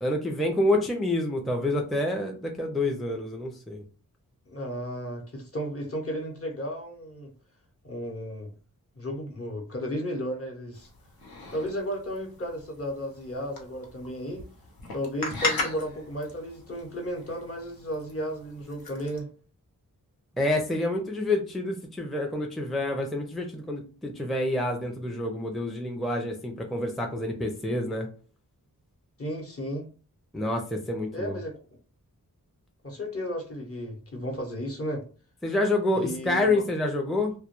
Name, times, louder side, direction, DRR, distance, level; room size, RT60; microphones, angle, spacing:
voice 1, 0.0-3.8 20.4-28.1 30.3-31.4 35.4-37.3, left 2 dB, ahead, 0.4 m, -28 dB
voice 2, 4.5-7.3 7.8-8.5 9.0-10.9 11.5-14.4 14.9-19.3 29.2-29.9 31.1-31.6 32.8-35.0 35.9-36.6, equal, 40° left, 0.9 m, -34 dB
teatime drinking carolyn, 10.7-19.2, left 3 dB, 75° left, 0.8 m, -38 dB
2.2 x 2.1 x 2.9 m
cardioid pair, 40°, 36 cm